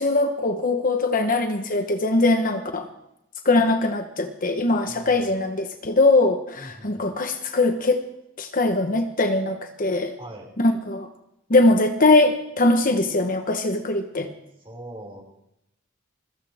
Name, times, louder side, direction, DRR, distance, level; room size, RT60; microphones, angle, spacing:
voice 1, 0.0-2.9 3.4-8.0 8.4-10.2 10.6-11.1 11.5-14.3, left 2 dB, 40° left, 6 dB, 1.1 m, -21 dB
voice 2, 4.8-5.4 6.6-7.1 10.2-10.5 14.6-15.2, right 1 dB, 30° right, -1 dB, 5.5 m, -41 dB
21.5 x 15.5 x 3.6 m, 0.84 s
head